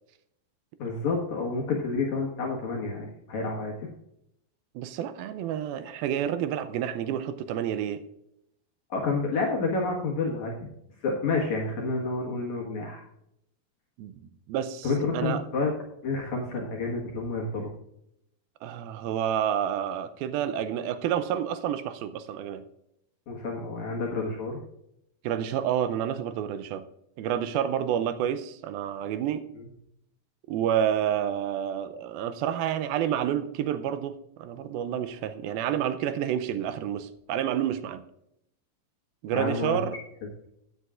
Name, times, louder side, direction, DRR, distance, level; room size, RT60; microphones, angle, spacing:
voice 1, 0.8-3.9 8.9-10.5 11.0-13.0 14.8-15.7 16.0-17.7 23.3-24.6 29.5-29.7 39.3-39.8, left 3 dB, 60° left, 2.5 m, -29 dB
voice 2, 4.8-8.0 14.0-14.1 14.5-15.4 18.6-22.6 25.2-26.8 27.2-29.4 30.5-38.0 39.2-40.0, right 9 dB, 85° right, 2.4 m, -29 dB
15.0 x 9.0 x 2.5 m
omnidirectional pair, 4.4 m